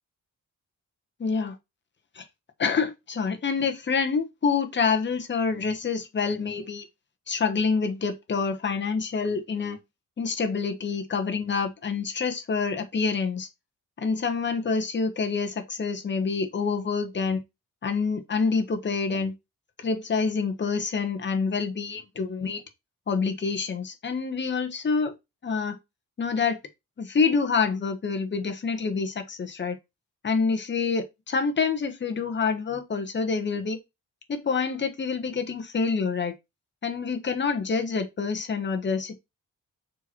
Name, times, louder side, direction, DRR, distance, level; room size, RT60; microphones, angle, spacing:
voice 1, 1.2-1.5 2.2-2.3 2.6-6.8 7.3-9.8 10.2-13.5 14.0-17.4 17.8-19.3 19.8-22.6 23.1-25.1 25.4-25.8 26.2-26.6 27.0-29.8 30.2-33.8 34.3-36.3 36.8-39.1, left 5 dB, 35° left, 1.3 m, -27 dB
7.0 x 4.5 x 4.4 m
wide cardioid pair, 145°, 32 cm